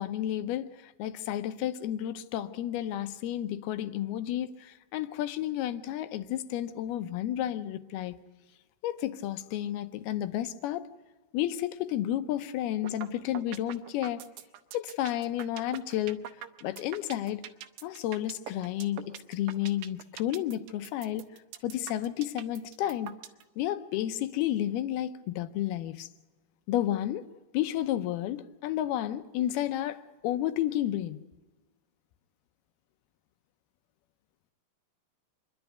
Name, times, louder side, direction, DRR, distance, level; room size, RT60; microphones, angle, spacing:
voice 1, 0.0-8.2 8.8-10.9 11.3-14.2 14.7-16.2 16.6-17.4 17.8-21.2 21.6-23.1 23.6-26.1 26.7-27.3 27.5-31.2, left 12 dB, 80° left, 2.7 m, -31 dB
sound 1, 12.8-13.1 13.4-23.4, right 12 dB, 85° right, 2.9 m, -43 dB
27.0 x 11.5 x 9.2 m
omnidirectional pair, 4.6 m